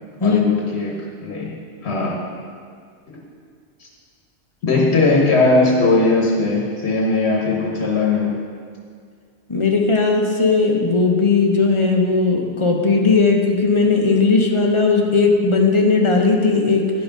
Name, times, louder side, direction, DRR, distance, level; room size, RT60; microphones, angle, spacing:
voice 1, 0.2-2.2 3.1-3.2 3.8-3.9 4.6-8.3, left 3 dB, 75° left, -2 dB, 1.3 m, -19 dB
voice 2, 9.5-16.9, left 4 dB, 30° left, 1 dB, 0.9 m, -17 dB
11.5 x 5.8 x 5.2 m, 2.1 s
omnidirectional pair, 1.1 m